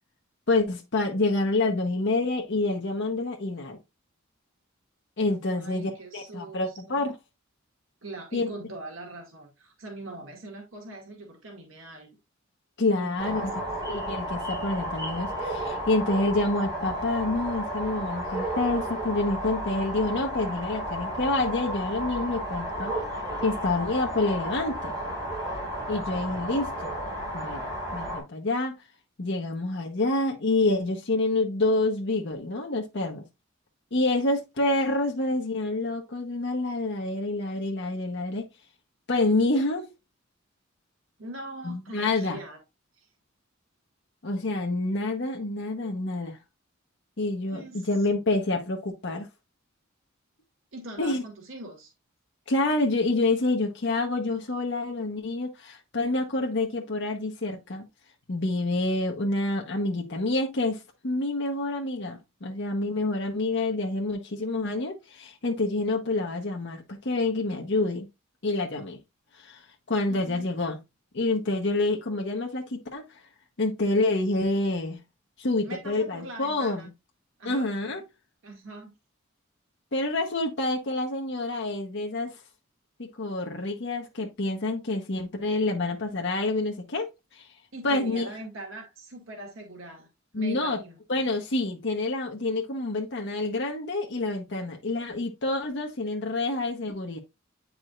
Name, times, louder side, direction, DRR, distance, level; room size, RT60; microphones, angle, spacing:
voice 1, 0.5-3.8 5.2-7.1 8.3-8.5 12.8-13.5 13.9-22.9 23.4-24.9 25.9-26.9 27.3-27.6 27.9-28.7 29.2-33.2 33.9-38.5 39.1-39.9 41.6-42.4 44.2-46.4 47.2-49.3 51.0-51.2 52.5-57.9 58.3-68.1 68.4-69.0 69.3-70.8 71.1-73.2 73.6-75.0 75.4-76.9 77.4-78.0 79.9-82.4 83.0-87.1 87.3-87.5 87.8-88.3 90.3-90.8 91.1-97.2, left 2 dB, 60° left, 1.0 m, -27 dB
voice 2, 5.5-7.0 8.0-12.1 12.9-13.7 41.2-42.6 42.9-43.1 47.5-48.1 50.7-51.9 70.1-70.5 75.6-76.9 77.4-78.0 78.4-78.9 87.7-90.1 90.4-91.0, right 2 dB, 75° right, 1.9 m, -42 dB
sound 1, 13.2-28.2, right 1 dB, 20° right, 4.3 m, -33 dB
8.8 x 4.8 x 2.4 m
head